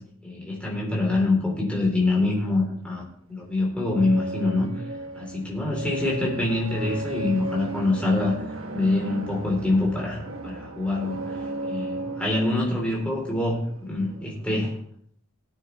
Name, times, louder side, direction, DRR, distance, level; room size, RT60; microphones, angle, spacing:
voice 1, 0.2-3.0 3.3-4.7 5.1-8.4 8.7-11.2 11.6-14.7, left 2 dB, 5° left, -4 dB, 4.0 m, -25 dB
sound 1, 3.0-14.7, right 2 dB, 70° right, 1.3 m, -36 dB
18.5 x 9.2 x 3.5 m, 0.65 s
head